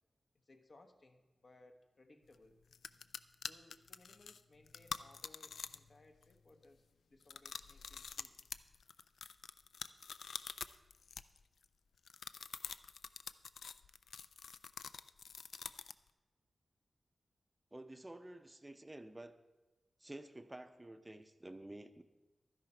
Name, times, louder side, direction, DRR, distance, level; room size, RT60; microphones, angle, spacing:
voice 1, 0.4-2.6 3.4-8.3, left 2 dB, 55° left, 5 dB, 1.2 m, -64 dB
sound 1, 2.3-2.4 2.7-5.9 6.2-6.6 7.2-11.6 12.0-16.1, left 6 dB, 90° left, 0.3 m, -47 dB
voice 2, 17.7-19.3 20.0-22.0, right 1 dB, 20° right, 9 dB, 0.6 m, -51 dB
12.0 x 10.5 x 4.4 m, 1.2 s
wide cardioid pair, 75°, 0 cm